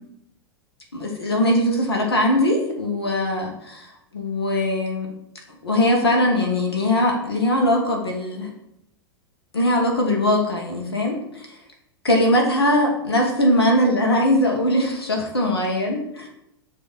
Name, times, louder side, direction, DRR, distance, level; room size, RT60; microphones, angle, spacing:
voice 1, 0.9-5.1 5.6-8.5 9.5-11.5 12.0-16.3, left 1 dB, 75° left, 1 dB, 1.3 m, -21 dB
6.8 x 2.8 x 5.2 m, 0.80 s
figure-of-eight pair, 95°, 13 cm